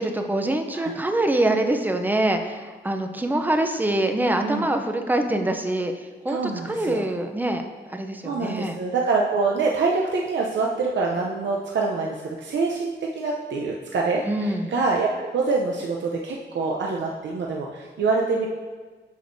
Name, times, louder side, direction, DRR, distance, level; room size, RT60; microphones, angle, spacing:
voice 1, 0.0-5.9 6.2-6.4 6.6-7.6 7.9-8.8 14.3-14.7, right 1 dB, 10° right, 5 dB, 0.5 m, -24 dB
voice 2, 6.3-7.0 8.2-18.5, right 4 dB, 75° right, -1 dB, 0.6 m, -25 dB
8.1 x 6.2 x 2.6 m, 1.4 s
wide cardioid pair, 110°, 19 cm